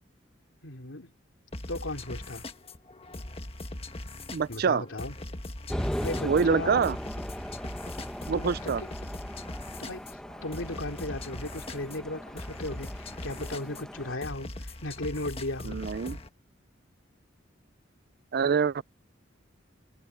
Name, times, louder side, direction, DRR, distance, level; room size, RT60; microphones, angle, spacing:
voice 1, 0.6-1.1 1.7-2.5 4.5-5.1 6.0-6.9 8.3-8.9 9.8-15.8, left 2 dB, 85° left, 3.1 m, -36 dB
sound 1, 1.5-16.3, left 1 dB, 30° left, 1.5 m, -41 dB
voice 2, 4.3-4.8 6.2-7.0 8.3-8.8 15.6-16.2 18.3-18.8, right 6 dB, 55° right, 0.4 m, -25 dB
sound 2, 5.7-14.2, equal, 5° left, 1.0 m, -38 dB
head